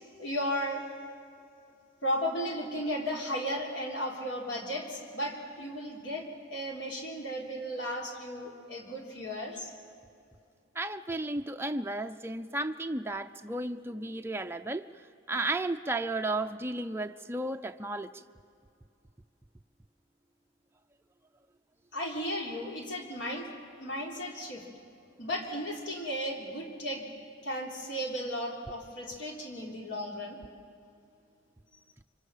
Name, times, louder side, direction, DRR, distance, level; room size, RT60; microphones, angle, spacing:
voice 1, 0.2-0.8 2.0-9.7 21.9-23.5 23.8-24.7 25.2-27.1 27.4-30.4, equal, 65° left, 1 dB, 3.6 m, -35 dB
voice 2, 10.8-14.8 15.3-18.1, right 2 dB, 10° right, 6 dB, 0.5 m, -33 dB
25.0 x 25.0 x 7.4 m, 2.5 s
head